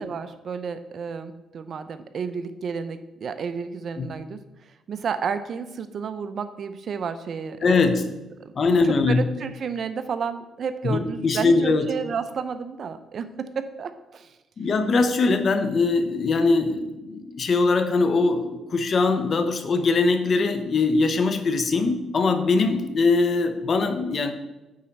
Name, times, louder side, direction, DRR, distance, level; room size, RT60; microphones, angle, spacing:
voice 1, 0.0-8.1 8.4-14.4, right 6 dB, 55° right, 11 dB, 0.6 m, -32 dB
voice 2, 7.6-8.0 8.6-9.2 10.8-11.9 14.6-24.3, left 3 dB, 45° left, 9 dB, 0.9 m, -21 dB
8.7 x 4.4 x 5.4 m, 1.0 s
cardioid pair, 90°, 0 cm